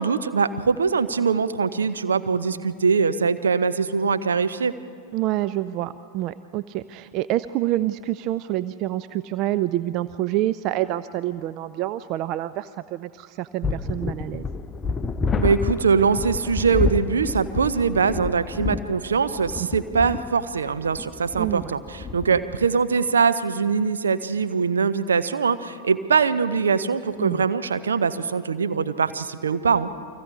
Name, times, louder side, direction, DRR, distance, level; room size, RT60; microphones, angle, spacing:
voice 1, 0.0-4.7 15.4-29.9, right 5 dB, 70° right, 11 dB, 0.8 m, -22 dB
voice 2, 5.1-14.5 21.4-21.6 27.2-27.4, right 14 dB, 40° right, 14 dB, 0.4 m, -27 dB
sound 1, 13.6-22.7, left 4 dB, 20° left, 0.6 m, -29 dB
29.5 x 24.5 x 3.8 m, 2.3 s
figure-of-eight pair, 90°, 0 cm